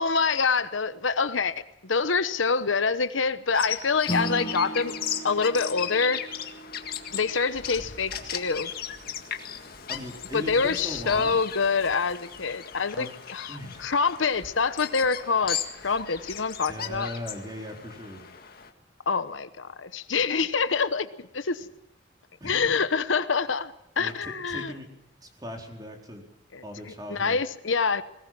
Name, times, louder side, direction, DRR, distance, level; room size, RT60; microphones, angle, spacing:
voice 1, 0.0-4.9 5.2-6.3 7.1-8.7 10.3-15.6 15.8-17.1 19.1-21.6 22.4-24.7 26.5-26.6 27.1-28.0, left 5 dB, 85° left, 13 dB, 1.0 m, -26 dB
Bird vocalization bird call bird song, 3.5-18.7, left 8 dB, 50° left, 1.9 m, -37 dB
Acoustic guitar / Strum, 4.1-8.9, right 1 dB, 25° left, 2.9 m, -37 dB
voice 2, 9.9-11.4 12.9-13.1 13.5-13.9 15.8-16.0 16.7-18.2 22.4-22.7 24.0-24.9 25.2-26.3 26.6-27.4, equal, 20° right, 2 dB, 4.1 m, -39 dB
21.5 x 19.0 x 7.5 m, 0.84 s
head